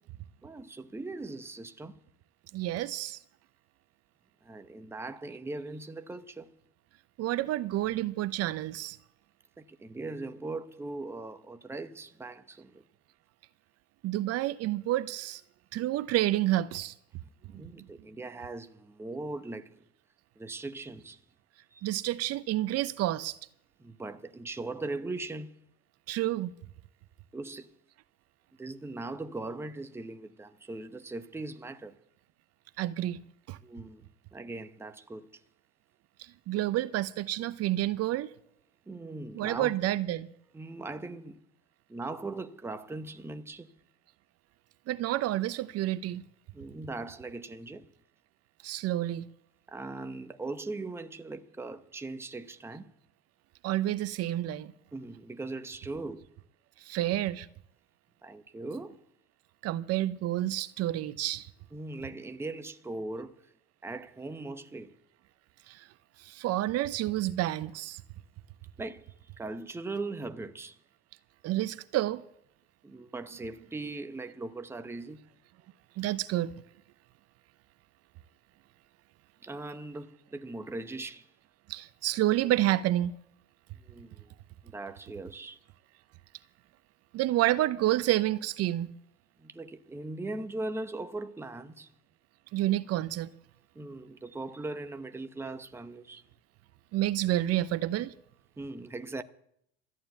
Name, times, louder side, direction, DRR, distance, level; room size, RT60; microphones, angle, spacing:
voice 1, 0.4-2.0 4.4-6.5 9.6-12.8 17.4-19.8 20.4-21.2 21.7-21.9 23.8-25.6 27.3-27.7 28.6-32.0 33.6-35.4 38.9-39.7 40.5-41.4 41.9-43.7 46.5-47.9 49.7-52.9 54.9-56.3 58.2-59.0 61.7-63.5 63.8-65.0 68.8-70.8 72.8-75.3 79.4-81.3 83.8-84.3 84.6-85.6 89.4-91.9 93.7-96.2 98.6-99.2, right 2 dB, 10° right, 0.9 m, -40 dB
voice 2, 2.5-3.2 7.2-9.0 14.0-15.4 15.7-16.9 21.8-23.4 26.1-26.5 32.8-33.2 33.5-33.6 36.2-38.3 39.3-40.3 44.9-46.2 48.6-49.3 53.6-54.7 56.8-57.5 59.6-61.5 65.7-65.9 66.2-68.0 71.4-72.2 76.0-76.5 81.7-83.1 87.1-88.9 92.5-93.3 96.9-98.1, right 14 dB, 50° right, 0.8 m, -29 dB
14.0 x 9.5 x 9.1 m
supercardioid pair, 100°, 32 cm